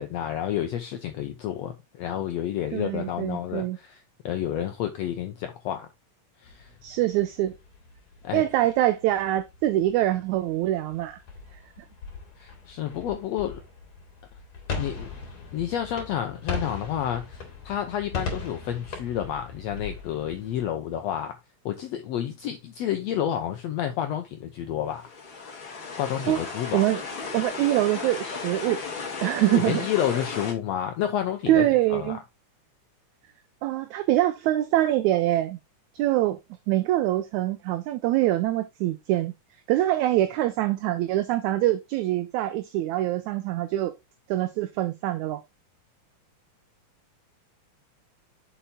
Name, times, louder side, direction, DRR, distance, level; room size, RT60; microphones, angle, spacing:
voice 1, 0.0-5.9 6.4-6.7 8.2-8.4 12.4-13.6 14.8-15.1 15.5-21.3 21.6-25.1 26.0-26.8 29.4-32.2, left 10 dB, 75° left, 1.6 m, -30 dB
voice 2, 2.7-3.8 6.8-7.5 8.3-11.2 26.3-26.4 26.7-27.0 27.3-28.8 29.2-29.9 31.5-32.2 33.6-35.6 35.9-36.4 36.7-39.3 39.7-43.9 44.3-45.4, right 14 dB, 80° right, 1.8 m, -24 dB
sound 1, 6.4-20.6, left 4 dB, 55° left, 3.4 m, -39 dB
sound 2, 25.0-30.5, left 4 dB, 40° left, 2.6 m, -35 dB
7.1 x 5.6 x 3.7 m
omnidirectional pair, 3.7 m